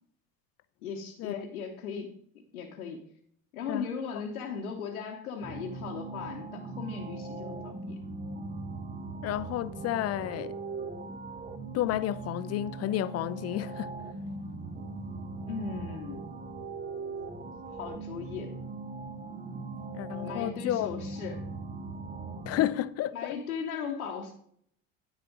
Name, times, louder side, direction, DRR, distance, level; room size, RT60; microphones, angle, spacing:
voice 1, 0.8-2.1 2.5-3.1 3.5-8.0 15.4-16.3 17.7-18.6 20.2-21.4 23.1-24.3, left 6 dB, 80° left, 1.0 m, -37 dB
sound 1, 5.4-22.7, right 3 dB, 20° right, 0.9 m, -40 dB
voice 2, 9.2-10.6 11.7-14.0 19.9-20.9 22.5-23.4, left 14 dB, 35° left, 0.4 m, -31 dB
9.9 x 4.2 x 5.1 m
hypercardioid pair, 65°, 43 cm